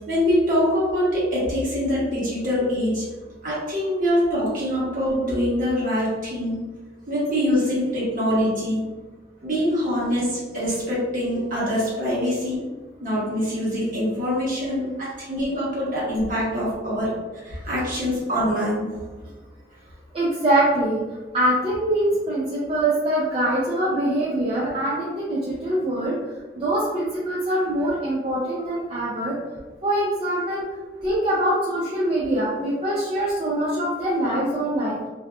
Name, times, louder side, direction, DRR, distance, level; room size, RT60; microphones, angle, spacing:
voice 1, 0.1-3.0 3.4-6.6 7.1-8.8 9.4-12.6 13.0-18.9, equal, 50° right, -7 dB, 1.1 m, -24 dB
voice 2, 14.7-15.0 20.1-21.0 21.3-26.2 26.6-29.3 29.8-30.7 31.0-35.0, right 1 dB, 30° right, -6 dB, 0.4 m, -23 dB
2.6 x 2.3 x 2.3 m, 1.3 s
head